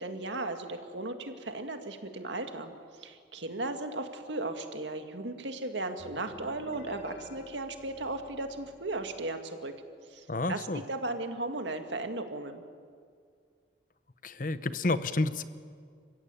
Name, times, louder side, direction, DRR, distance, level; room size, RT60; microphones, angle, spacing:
voice 1, 0.0-2.7 3.0-9.7 10.1-12.6, right 2 dB, 85° right, 6 dB, 2.0 m, -36 dB
sound 1, 6.0-9.7, left 2 dB, 75° left, 3.3 m, -51 dB
voice 2, 10.3-10.8 14.2-15.4, left 2 dB, 45° left, 13 dB, 0.9 m, -30 dB
29.5 x 15.5 x 9.0 m, 2.1 s
head